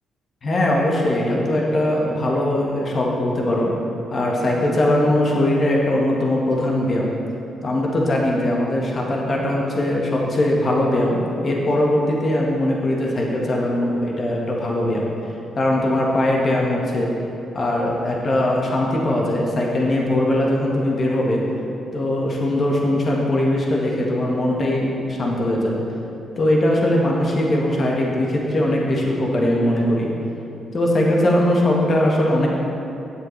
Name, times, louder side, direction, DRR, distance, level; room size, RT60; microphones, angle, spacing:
voice 1, 0.4-3.7 4.1-7.1 7.6-15.1 15.5-17.1 17.5-21.4 21.9-25.8 26.4-30.1 30.7-32.5, left 1 dB, 45° left, -2 dB, 1.5 m, -20 dB
9.7 x 7.6 x 3.3 m, 2.8 s
cardioid pair, 75°, 0 cm